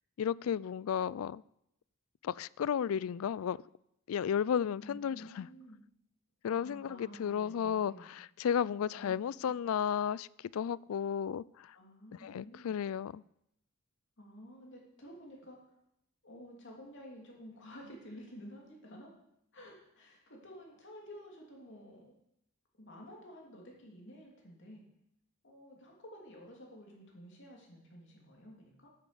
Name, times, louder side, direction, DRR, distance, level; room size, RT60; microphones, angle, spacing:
voice 1, 0.2-1.4 2.2-3.6 4.1-5.5 6.4-11.8 12.1-13.2, left 8 dB, 75° left, 0.3 m, -33 dB
voice 2, 4.8-5.8 6.5-8.1 8.8-9.5 11.7-12.8 14.2-15.6 16.2-19.1 19.5-22.1 22.8-24.8 25.4-28.9, equal, 55° left, 2.9 m, -52 dB
9.7 x 9.1 x 6.9 m
head